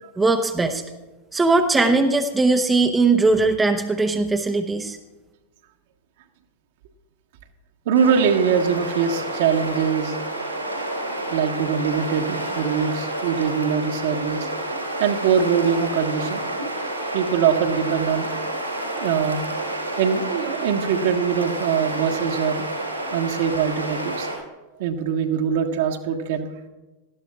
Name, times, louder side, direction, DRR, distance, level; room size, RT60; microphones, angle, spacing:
voice 1, 0.2-0.8 1.3-5.0, right 3 dB, 10° right, 5 dB, 0.9 m, -19 dB
voice 2, 7.8-10.2 11.3-14.5 15.0-16.4 17.1-18.3 19.0-19.5 19.9-22.7 23.1-24.3 24.8-26.5, right 7 dB, 55° right, 2 dB, 1.5 m, -22 dB
sound 1, 7.9-24.3, right 1 dB, 90° right, 4.2 m, -29 dB
18.5 x 13.5 x 2.4 m, 1.1 s
figure-of-eight pair, 90°, 0 cm